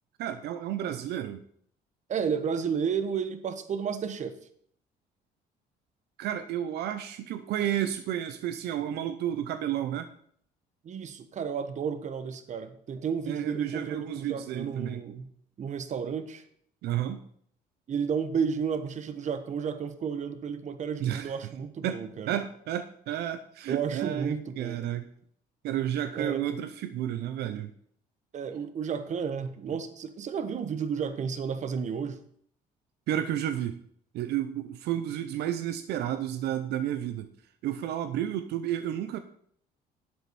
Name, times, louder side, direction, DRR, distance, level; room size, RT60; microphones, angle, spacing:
voice 1, 0.2-1.4 6.2-10.1 13.3-15.0 16.8-17.2 21.0-21.3 21.8-22.0 22.3-25.1 25.6-27.7 33.1-33.8 34.1-37.3 37.6-39.2, right 11 dB, 75° right, 10 dB, 0.7 m, -31 dB
voice 2, 2.1-4.4 10.8-15.3 15.6-16.4 17.9-22.3 23.7-24.8 26.1-26.4 28.3-32.2, right 6 dB, 45° right, 11 dB, 1.1 m, -32 dB
11.5 x 8.2 x 4.3 m, 0.63 s
cardioid pair, 110°, 17 cm